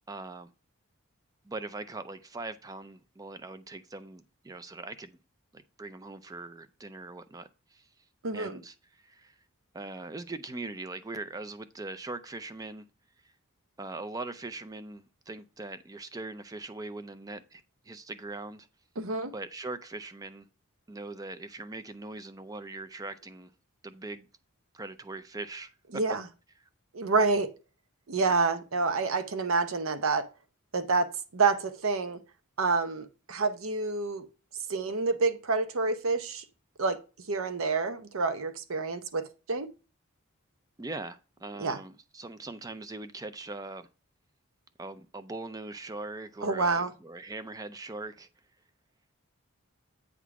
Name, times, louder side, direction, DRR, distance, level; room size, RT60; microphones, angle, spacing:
voice 1, 0.1-0.5 1.4-5.2 5.5-7.9 8.3-9.4 9.7-12.9 13.8-18.7 19.3-20.5 20.9-23.5 23.8-24.3 24.7-25.7 40.8-43.9 44.8-48.3, right 2 dB, 15° right, 0.4 m, -41 dB
voice 2, 19.0-19.3 25.9-26.2 26.9-27.5 28.1-30.3 30.7-31.1 31.3-32.2 32.6-34.3 34.7-36.4 36.8-37.0 37.3-39.7 41.6-41.8 46.4-46.9, right 4 dB, 65° right, 0.7 m, -28 dB
8.3 x 3.6 x 4.7 m
head